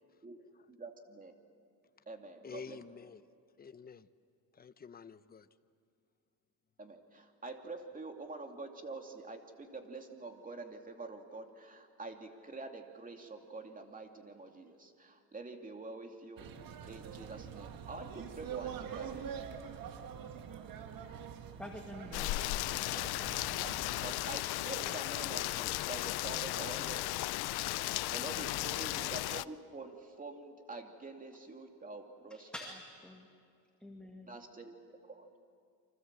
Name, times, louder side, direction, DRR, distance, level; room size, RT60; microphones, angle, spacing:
voice 1, 0.7-1.3 2.1-2.8 6.8-16.5 16.9-19.3 24.0-27.4 27.6-32.5 34.2-34.7 35.1-35.3, right 3 dB, 20° right, 2.6 m, -46 dB
voice 2, 2.4-3.2 3.6-4.1 4.5-5.5, left 6 dB, 25° left, 0.8 m, -49 dB
sound 1, 16.4-24.1, right 8 dB, 60° right, 1.8 m, -45 dB
voice 3, 21.6-22.5 28.3-28.9 32.3-33.3 33.8-34.4, left 1 dB, 5° left, 2.2 m, -48 dB
Rain, 22.1-29.4, left 18 dB, 75° left, 0.6 m, -35 dB
29.5 x 25.0 x 7.6 m
cardioid pair, 120°, 38 cm